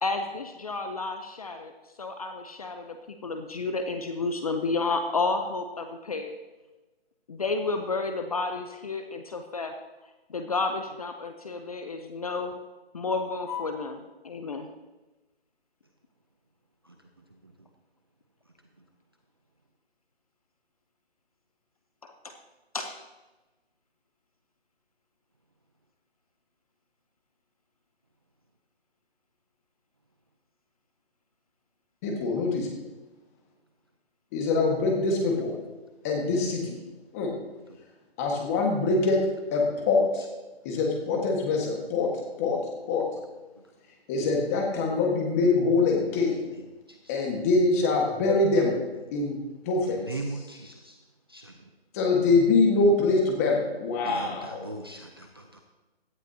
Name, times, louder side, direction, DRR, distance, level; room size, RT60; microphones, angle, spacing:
voice 1, 0.0-6.3 7.3-9.8 10.3-12.6 12.9-14.7 22.0-22.4 22.7-22.9, left 3 dB, 35° left, 6 dB, 0.7 m, -31 dB
voice 2, 32.0-32.7 34.3-35.5 36.0-36.7 37.1-37.3 38.2-39.2 39.5-40.2 40.6-42.1 42.4-42.6 42.9-43.0 44.1-46.4 47.1-48.7 49.1-49.4 49.6-50.2 51.9-54.6, left 3 dB, 15° left, 1 dB, 1.5 m, -24 dB
voice 3, 50.0-50.9 51.3-51.5 54.1-55.6, right 2 dB, 25° right, 3 dB, 0.5 m, -38 dB
16.5 x 12.0 x 2.8 m, 1.2 s
hypercardioid pair, 165°, 32 cm